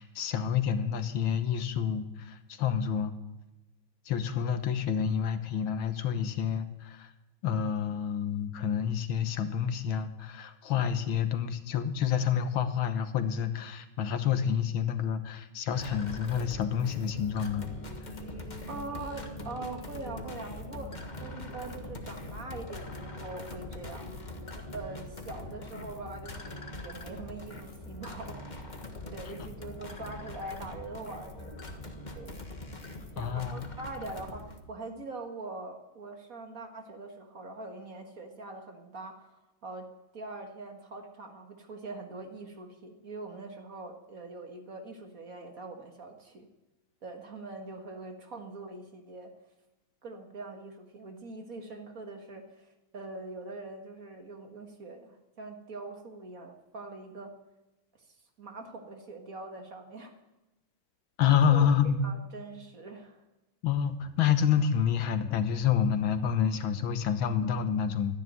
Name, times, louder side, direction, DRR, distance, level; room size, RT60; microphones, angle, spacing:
voice 1, 0.0-3.1 4.1-7.1 7.4-17.7 33.2-33.6 61.2-62.1 63.6-68.2, left 8 dB, 75° left, 10 dB, 1.8 m, -28 dB
sound 1, 15.7-34.6, left 1 dB, 25° left, 1.3 m, -42 dB
voice 2, 18.7-20.9 21.2-24.1 24.5-28.7 29.1-31.6 32.1-32.4 33.2-39.3 39.6-39.9 40.1-46.5 47.0-49.3 50.0-52.7 52.9-57.3 57.9-58.1 58.4-60.2 61.4-61.7 62.0-63.2, right 3 dB, 45° right, 4 dB, 1.9 m, -43 dB
13.0 x 11.0 x 9.1 m, 1.0 s
omnidirectional pair, 2.3 m